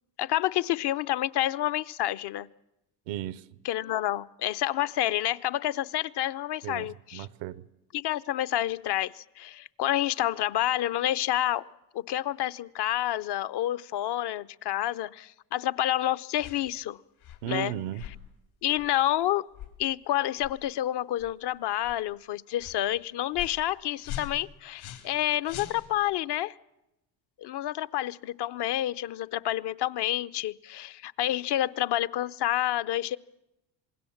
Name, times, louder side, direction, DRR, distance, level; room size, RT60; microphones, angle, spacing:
voice 1, 0.2-2.5 3.6-7.3 7.9-11.6 11.9-17.0 17.5-17.7 18.6-19.4 19.8-26.5 27.4-33.2, left 13 dB, 55° left, 0.7 m, -29 dB
voice 2, 3.1-3.6 6.6-7.7 17.4-18.1, right 12 dB, 85° right, 0.9 m, -35 dB
sound 1, 16.4-16.6 17.2-17.5 18.0-18.2 18.8-18.9 19.5-19.8 20.4-20.6 21.2-21.4 21.8-22.0 22.6-22.8 23.3-23.6 24.0-25.2 25.4-26.1, left 11 dB, 80° left, 3.4 m, -42 dB
27.0 x 20.0 x 7.2 m
supercardioid pair, 70°, 48 cm